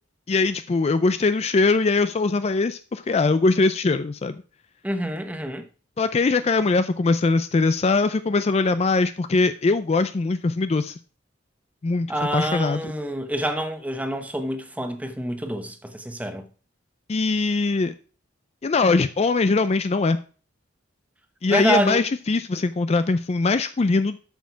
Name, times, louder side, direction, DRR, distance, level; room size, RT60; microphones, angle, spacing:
voice 1, 0.3-4.4 6.0-10.9 11.8-12.1 12.3-12.9 17.1-17.9 18.6-20.2 21.4-24.2, left 3 dB, 35° left, 0.4 m, -21 dB
voice 2, 4.8-5.7 12.1-16.5 21.5-22.0, right 1 dB, 10° right, 0.9 m, -27 dB
8.2 x 6.5 x 4.6 m
head